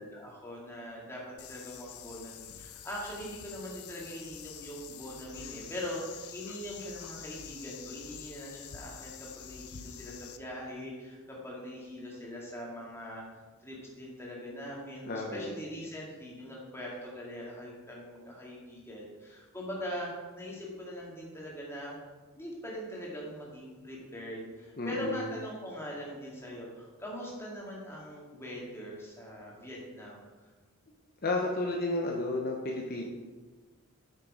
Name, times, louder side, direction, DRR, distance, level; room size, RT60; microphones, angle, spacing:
voice 1, 0.0-13.2 13.6-22.0 22.3-30.3, equal, 10° left, -4 dB, 2.2 m, -42 dB
sound 1, 1.4-10.4, left 9 dB, 80° left, 0.6 m, -47 dB
voice 2, 15.1-15.6 24.8-25.3 31.2-33.0, left 2 dB, 45° left, -1 dB, 0.9 m, -32 dB
8.8 x 6.7 x 4.9 m, 1.3 s
head